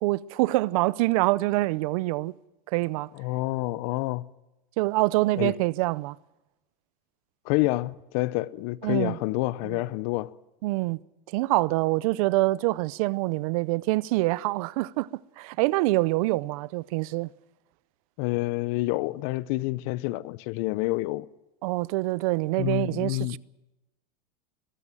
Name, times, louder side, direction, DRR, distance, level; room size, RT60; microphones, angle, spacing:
voice 1, 0.0-2.3 2.7-3.1 4.8-6.2 8.8-9.2 9.6-9.8 10.6-11.0 11.3-15.1 15.4-17.3 21.6-23.4, right 20 dB, 70° right, 0.6 m, -25 dB
voice 2, 3.1-4.3 5.4-5.5 7.4-10.3 18.2-21.3 22.6-23.4, left 19 dB, 60° left, 0.8 m, -28 dB
22.0 x 14.5 x 8.9 m
supercardioid pair, 130°, 19 cm